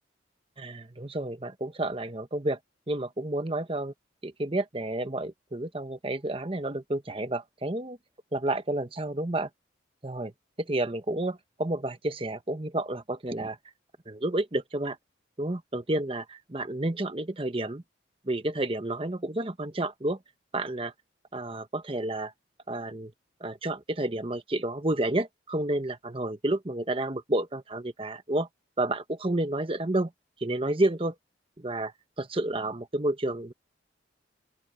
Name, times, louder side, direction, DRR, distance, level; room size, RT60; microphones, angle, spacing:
voice 1, 0.6-2.6 2.9-3.9 4.2-8.0 8.3-9.5 10.0-10.3 10.6-13.6 14.1-15.0 15.4-17.8 18.3-20.2 20.5-20.9 21.3-22.3 22.7-23.1 23.4-28.5 28.8-30.1 30.4-31.1 31.6-33.5, right 1 dB, 30° right, 1.0 m, -30 dB
open air
head